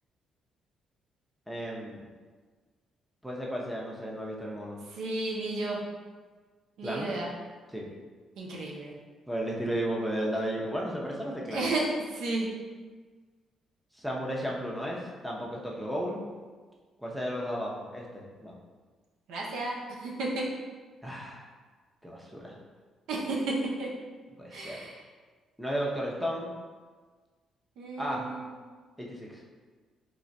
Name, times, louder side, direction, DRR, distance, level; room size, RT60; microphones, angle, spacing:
voice 1, 1.5-2.0 3.2-4.8 6.8-7.1 7.7-7.8 9.3-11.7 14.0-16.2 17.0-18.5 21.0-21.4 22.0-22.6 24.4-24.8 25.6-26.5 28.0-28.3 29.0-29.4, equal, ahead, -3 dB, 0.7 m, -34 dB
voice 2, 5.0-5.8 6.8-7.3 8.4-8.9 11.5-12.5 19.3-20.5 23.1-23.9 24.5-25.0 27.8-28.5, right 2 dB, 85° right, -3 dB, 0.7 m, -32 dB
3.2 x 2.3 x 4.0 m, 1.4 s
cardioid pair, 90°, 0 cm